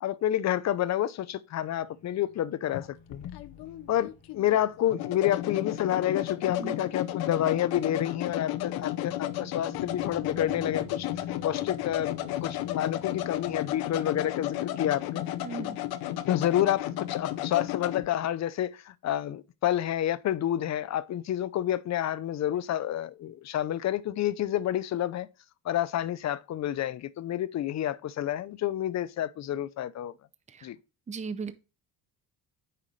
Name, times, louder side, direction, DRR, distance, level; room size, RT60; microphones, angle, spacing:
voice 1, 0.0-3.3 3.9-11.1 11.4-15.2 16.3-25.3 25.6-30.1 30.6-30.8, left 11 dB, 50° left, 0.6 m, -29 dB
sound 1, 1.7-7.1 7.4-7.6 8.7-15.3, left 4 dB, 20° left, 1.7 m, -51 dB
sound 2, 2.7-18.1, left 13 dB, 90° left, 0.8 m, -33 dB
voice 2, 6.5-6.9 15.4-15.8 30.5-30.7 31.1-31.5, right 5 dB, 20° right, 0.7 m, -37 dB
8.8 x 5.8 x 3.1 m
cardioid pair, 120°, 36 cm